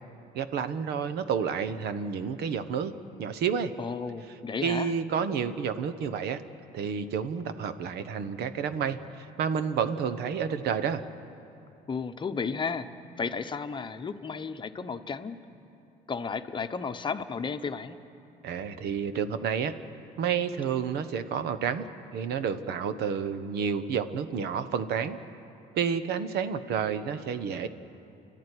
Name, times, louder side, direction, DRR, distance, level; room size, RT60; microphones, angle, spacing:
voice 1, 0.3-2.9 3.2-3.7 4.6-6.4 6.7-11.0 18.4-19.7 20.2-21.9 22.1-25.2 25.7-27.7, right 7 dB, 75° right, 11 dB, 1.2 m, -30 dB
voice 2, 3.8-4.9 11.9-12.9 13.2-15.4 16.1-18.0, left 5 dB, 30° left, 8 dB, 1.0 m, -33 dB
30.0 x 13.0 x 9.9 m, 2.8 s
cardioid pair, 110°, 17 cm